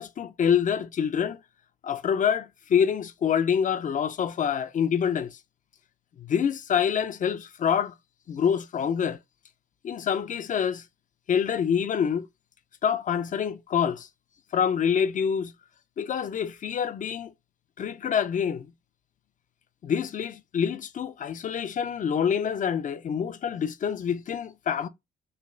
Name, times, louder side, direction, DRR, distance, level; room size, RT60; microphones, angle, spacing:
voice 1, 0.0-1.4 1.8-5.4 6.2-7.9 8.3-9.2 9.8-10.8 11.3-12.3 12.8-14.1 14.5-15.5 16.0-17.3 17.8-18.7 19.8-24.9, left 7 dB, 40° left, 0.4 m, -26 dB
3.3 x 2.2 x 3.7 m
cardioid pair, 90°, 20 cm